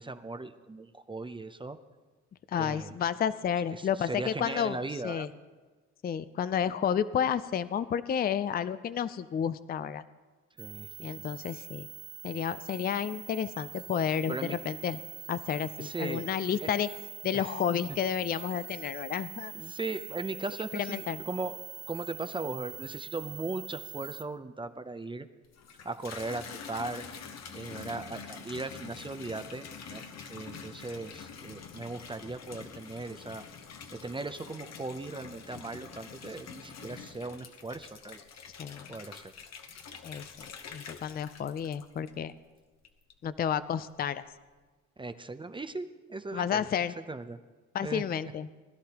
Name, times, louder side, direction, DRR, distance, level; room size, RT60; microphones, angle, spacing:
voice 1, 0.0-1.8 2.6-2.9 3.7-5.3 10.6-10.9 14.3-14.6 15.8-16.2 17.3-17.5 19.5-21.6 21.9-25.3 25.8-27.0 27.5-29.6 29.9-30.0 30.3-33.4 33.9-38.2 38.9-39.3 45.0-46.7 47.1-47.4 47.8-48.0, right 3 dB, 15° right, 9 dB, 0.5 m, -38 dB
voice 2, 2.5-4.8 5.0-5.3 6.0-10.0 11.0-11.9 12.2-15.0 15.3-16.9 17.2-19.5 20.7-21.2 38.6-39.0 40.0-42.3 43.2-44.2 46.3-47.0 47.7-48.5, left 8 dB, 30° left, 15 dB, 0.4 m, -31 dB
sound 1, 10.6-24.2, right 9 dB, 65° right, 1.0 m, -44 dB
Water tap faucet / Bathtub (filling or washing), 25.4-42.4 42.8-43.4, left 6 dB, 60° left, 1.1 m, -46 dB
20.5 x 11.5 x 2.9 m, 1.4 s
cardioid pair, 90°, 30 cm